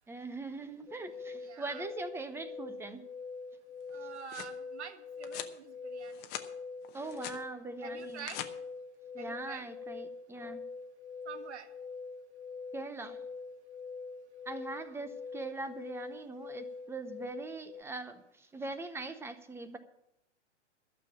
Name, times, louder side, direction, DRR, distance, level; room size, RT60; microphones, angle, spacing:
voice 1, 0.1-3.0 4.0-4.1 6.9-8.3 9.1-10.6 12.7-13.2 14.5-19.8, right 3 dB, 5° right, 10 dB, 0.6 m, -42 dB
sound 1, 0.9-17.8, left 4 dB, 85° left, 0.8 m, -44 dB
voice 2, 1.4-1.9 3.9-6.2 7.8-8.4 9.2-9.7 11.3-11.7, right 7 dB, 65° right, 8 dB, 1.7 m, -46 dB
sound 2, 3.9-4.6 5.2-5.6 6.0-6.5 6.8-7.4 8.0-8.5, left 12 dB, 30° left, 0.9 m, -43 dB
12.5 x 6.7 x 8.5 m, 0.80 s
hypercardioid pair, 125°, 36 cm